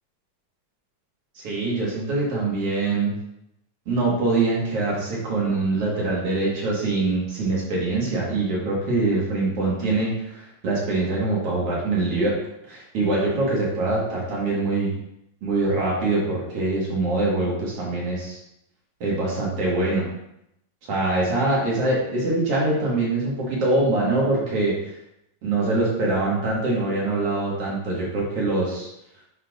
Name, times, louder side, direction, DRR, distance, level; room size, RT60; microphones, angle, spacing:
voice 1, 1.4-3.1 3.9-12.4 12.7-14.9 15.4-18.4 19.0-20.0 20.9-24.9 25.4-28.9, right 2 dB, 55° right, -4 dB, 2.3 m, -24 dB
9.4 x 4.5 x 2.5 m, 0.81 s
omnidirectional pair, 3.7 m